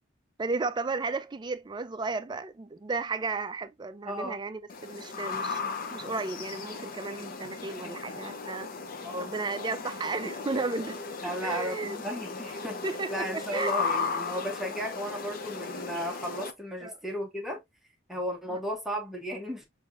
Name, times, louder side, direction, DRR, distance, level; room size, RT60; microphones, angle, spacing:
voice 1, 0.4-5.6 5.9-8.7 9.2-12.0 12.8-13.7 16.8-17.0 18.5-18.6, right 3 dB, 25° right, 0.4 m, -34 dB
voice 2, 4.0-4.4 9.0-9.3 11.2-12.8 13.1-17.6 18.1-19.6, equal, ahead, 0.8 m, -34 dB
sound 1, 4.7-16.5, left 4 dB, 50° left, 0.6 m, -36 dB
6.3 x 2.7 x 2.4 m
head